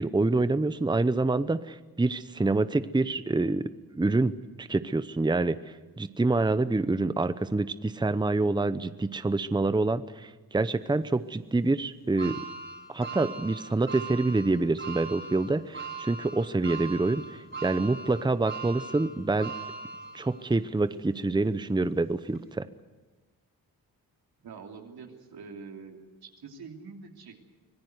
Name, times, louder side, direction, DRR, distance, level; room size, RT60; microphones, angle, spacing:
voice 1, 0.0-3.7 3.9-5.6 6.0-12.4 12.9-19.5 20.1-22.6, right 2 dB, 10° right, 13 dB, 0.8 m, -26 dB
sound 1, 12.2-20.5 21.0-21.1 22.3-22.4, right 4 dB, 35° right, 5.0 m, -40 dB
voice 2, 24.4-27.5, right 5 dB, 85° right, 2 dB, 3.2 m, -45 dB
25.0 x 18.5 x 8.0 m, 1.2 s
cardioid pair, 80°, 36 cm